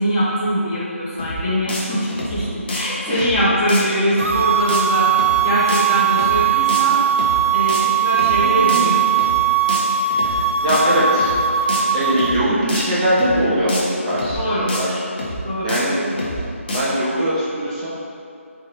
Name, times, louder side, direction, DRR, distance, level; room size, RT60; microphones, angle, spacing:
voice 1, 0.0-5.2 5.4-7.0 7.5-9.2 14.4-14.7 15.4-15.7, equal, 20° left, -10 dB, 1.2 m, -22 dB
sound 1, 1.2-1.4 1.7-1.8 2.1-2.4 2.7-2.8 3.2-3.4 3.7-3.8 4.1-4.4 4.7-4.8 5.2-5.4 5.7-5.8 6.1-6.4 6.7-6.8 7.2-7.4 7.7-7.8 8.1-8.4 8.7-8.8 9.2-9.4 9.7-9.8 10.1-10.4 10.7-10.8 11.2-11.4 11.7-11.8 12.1-12.4 12.7-12.8 13.2-13.4 13.7-13.8 14.1-14.4 14.7-14.8 15.2-15.4 15.7-15.8 16.1-16.4 16.7-16.8, left 1 dB, 40° left, 1.2 m, -27 dB
voice 2, 3.1-3.4 5.4-5.5 8.2-8.9 10.1-15.1 15.6-16.4 16.7-17.9, equal, 25° right, -9 dB, 1.1 m, -22 dB
sound 2, 4.2-12.3, right 8 dB, 75° right, 0.7 m, -19 dB
8.7 x 3.6 x 3.1 m, 2.5 s
figure-of-eight pair, 155°, 8 cm